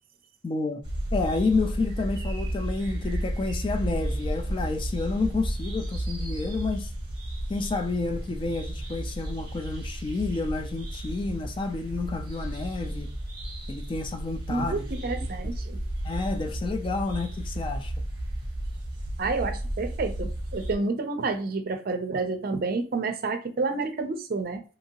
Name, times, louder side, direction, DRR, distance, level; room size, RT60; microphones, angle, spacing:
voice 1, 0.4-0.8 1.1-6.9 7.5-13.1 13.7-14.8 16.0-17.9, left 3 dB, 25° left, 0.3 m, -30 dB
sound 1, 0.8-20.7, right 1 dB, 25° right, 0.8 m, -33 dB
voice 2, 14.5-15.8 19.2-24.6, right 3 dB, 50° right, 0.5 m, -29 dB
2.8 x 2.7 x 2.8 m
head